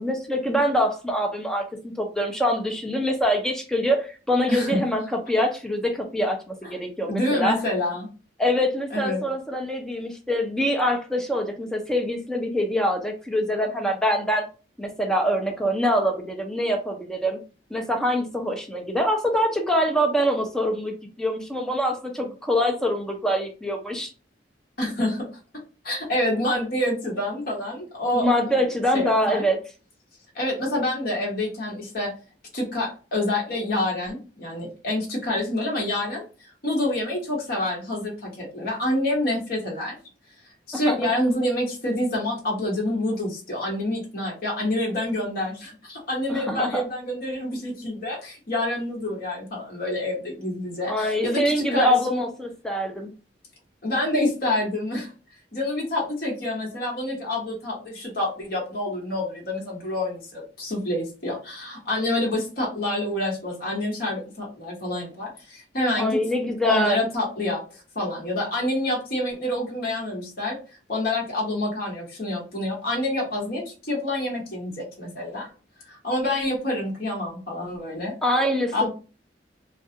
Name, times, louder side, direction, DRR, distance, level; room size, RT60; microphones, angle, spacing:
voice 1, 0.0-1.6 2.0-5.0 5.3-7.6 8.4-14.4 14.8-17.4 17.7-24.1 28.1-29.6 40.9-41.0 46.3-46.8 50.9-53.1 66.0-67.0 78.2-78.9, equal, 5° left, 3 dB, 0.4 m, -24 dB
voice 2, 4.5-4.8 7.1-8.1 8.9-9.2 24.8-25.3 25.8-28.3 28.9-29.4 30.3-32.1 32.5-36.2 36.6-40.0 40.7-52.2 53.8-55.1 55.5-66.2 66.6-67.6 67.9-70.6 70.9-75.5 75.9-78.1 78.7-78.9, left 1 dB, 55° left, -3 dB, 1.0 m, -27 dB
2.4 x 2.2 x 2.7 m, 0.34 s
head